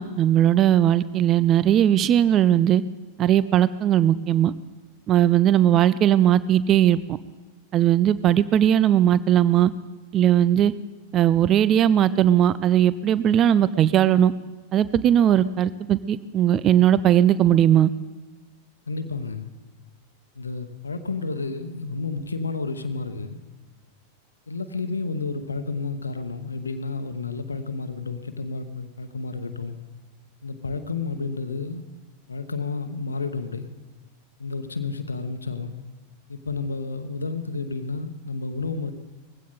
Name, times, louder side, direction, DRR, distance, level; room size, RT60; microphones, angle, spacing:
voice 1, 0.0-2.8 3.2-4.5 5.1-7.0 7.7-9.7 10.1-10.7 11.1-14.3 14.7-17.9, right 11 dB, 30° right, 17 dB, 0.4 m, -18 dB
voice 2, 18.9-19.5 20.4-23.4 24.5-29.8 30.4-31.8 32.3-33.7 34.4-35.7 36.3-38.9, left 4 dB, 75° left, 10 dB, 0.9 m, -31 dB
20.0 x 16.0 x 3.9 m, 1.2 s
figure-of-eight pair, 90°, 0 cm